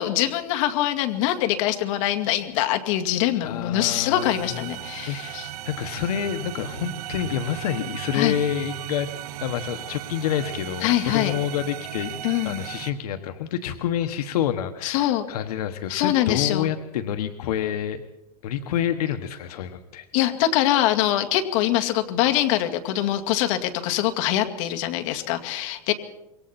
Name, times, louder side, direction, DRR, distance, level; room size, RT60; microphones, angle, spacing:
voice 1, 0.0-5.5 8.1-8.3 10.8-11.4 12.2-12.6 14.8-15.3 15.9-16.7 20.1-25.9, left 13 dB, 55° left, 6 dB, 2.3 m, -23 dB
voice 2, 3.4-4.3 5.1-9.1 9.4-12.2 12.4-18.0 18.4-20.1, left 9 dB, 80° left, 8 dB, 1.4 m, -28 dB
sound 1, 4.2-12.9, right 12 dB, 80° right, 1.1 m, -36 dB
26.5 x 23.0 x 4.3 m, 0.91 s
supercardioid pair, 155°, 19 cm